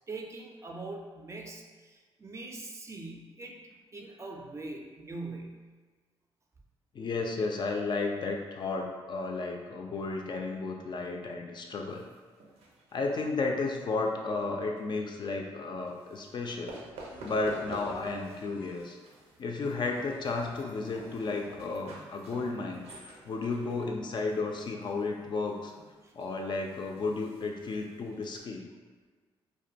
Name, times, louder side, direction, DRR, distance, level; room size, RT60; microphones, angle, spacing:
voice 1, 0.0-3.6 3.9-5.6 26.0-26.1, right 2 dB, 30° right, 1 dB, 0.4 m, -42 dB
voice 2, 6.9-12.1 12.9-16.8 17.2-19.0 19.4-25.7 26.2-28.7, left 3 dB, 50° left, 1 dB, 0.4 m, -33 dB
sound 1, 11.9-14.1 14.4-14.8 15.9-16.3 16.7-18.5 18.7-28.4, right 2 dB, 90° right, 0.4 m, -49 dB
sound 2, 15.6-22.2 22.4-22.5 22.8-23.6, left 1 dB, 85° left, 0.7 m, -54 dB
2.4 x 2.2 x 2.7 m, 1.4 s
cardioid pair, 75°, 10 cm